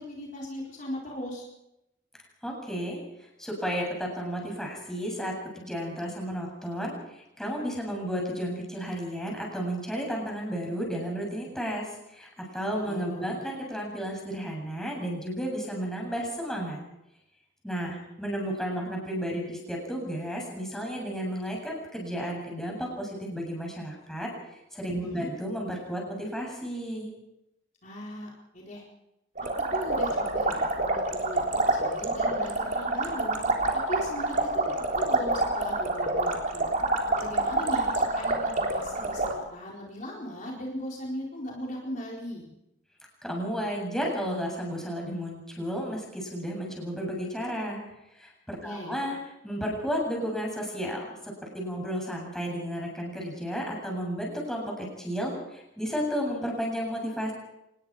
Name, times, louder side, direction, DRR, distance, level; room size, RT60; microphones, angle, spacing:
voice 1, 0.0-1.4 12.7-13.3 25.0-25.3 27.8-28.8 29.7-33.4 33.7-34.7 34.9-36.7 37.2-42.5 48.6-49.0, left 1 dB, 45° left, -3 dB, 4.3 m, -38 dB
voice 2, 2.4-3.0 3.4-11.9 12.1-16.8 17.6-24.3 24.7-27.1 43.2-47.8 48.2-49.2 49.4-57.3, equal, 5° left, -1 dB, 7.8 m, -33 dB
sound 1, 29.4-39.3, right 2 dB, 45° right, 3.6 m, -27 dB
26.5 x 20.0 x 5.0 m, 0.86 s
head